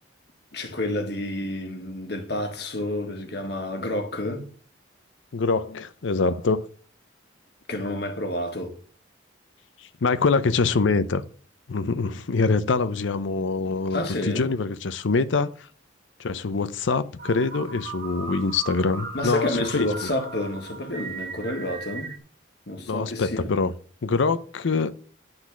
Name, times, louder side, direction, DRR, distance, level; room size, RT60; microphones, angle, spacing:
voice 1, 0.5-4.4 7.7-8.8 13.9-14.5 19.1-22.1 22.7-23.5, left 1 dB, 60° left, 1.5 m, -29 dB
voice 2, 5.3-6.6 10.0-11.2 11.7-15.5 16.2-19.9 22.9-23.7 24.0-24.9, left 4 dB, 75° left, 0.6 m, -24 dB
sound 1, 17.2-22.2, right 4 dB, 50° right, 1.9 m, -38 dB
10.5 x 4.0 x 6.0 m
head